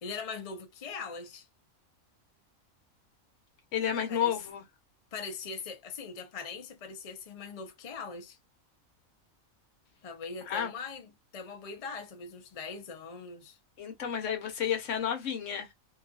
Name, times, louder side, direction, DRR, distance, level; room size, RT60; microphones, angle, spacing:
voice 1, 0.0-1.5 4.1-4.4 5.1-8.4 10.0-13.6, left 5 dB, 50° left, 0.4 m, -41 dB
voice 2, 3.7-4.6 10.5-10.7 13.8-15.7, left 9 dB, 65° left, 1.1 m, -31 dB
2.7 x 2.3 x 2.4 m
omnidirectional pair, 1.4 m